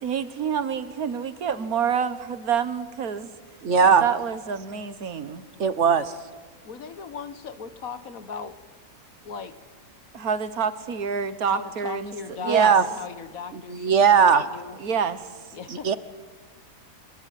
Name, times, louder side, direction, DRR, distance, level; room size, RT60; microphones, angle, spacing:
voice 1, 0.0-3.3 3.8-5.4 10.1-12.1 12.4-12.7 14.8-15.2, right 7 dB, 70° right, 13 dB, 1.7 m, -28 dB
voice 2, 3.6-4.0 5.6-6.1 12.4-12.8 13.5-14.4 15.7-16.0, right 6 dB, 55° right, 14 dB, 1.2 m, -18 dB
voice 3, 6.6-8.6 9.2-9.5 11.5-14.8 15.5-15.9, left 6 dB, 65° left, 12 dB, 1.7 m, -38 dB
26.5 x 20.5 x 9.4 m, 1.5 s
omnidirectional pair, 1.6 m